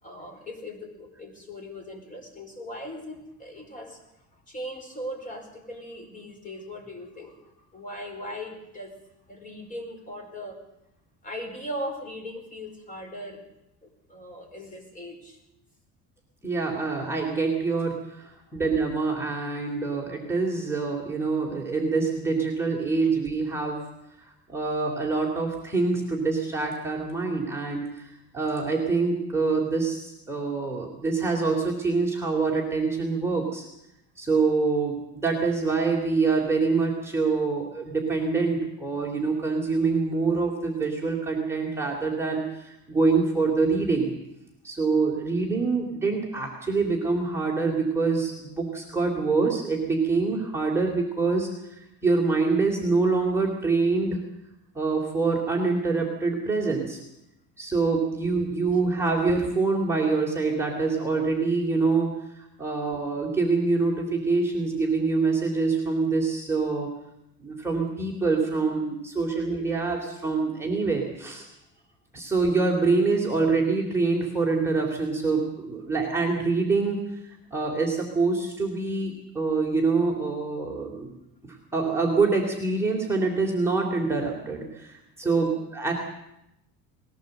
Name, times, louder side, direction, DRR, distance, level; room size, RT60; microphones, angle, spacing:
voice 1, 0.0-4.1 4.5-7.4 7.7-8.9 9.3-10.6 11.2-13.4 13.8-15.4 18.5-18.6 23.0-23.1 58.7-58.8 85.2-85.5, equal, 25° left, 3 dB, 5.0 m, -39 dB
voice 2, 16.4-23.8 24.5-28.1 28.3-33.6 34.2-44.1 44.6-51.5 52.0-54.2 54.7-57.0 57.6-66.9 67.4-71.5 72.1-77.0 77.5-81.1 81.7-85.9, right 4 dB, 10° right, -1 dB, 3.1 m, -25 dB
20.5 x 17.0 x 7.9 m, 0.85 s
cardioid pair, 145°, 33 cm